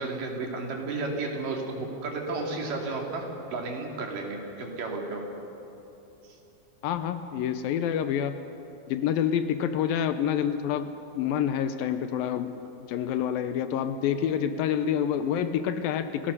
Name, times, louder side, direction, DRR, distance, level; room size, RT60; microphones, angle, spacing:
voice 1, 0.0-5.3, right 3 dB, 65° right, 1 dB, 4.0 m, -33 dB
voice 2, 6.8-8.4 8.9-10.9 11.2-16.3, left 9 dB, 80° left, 10 dB, 2.5 m, -27 dB
28.5 x 17.5 x 6.8 m, 2.9 s
omnidirectional pair, 4.3 m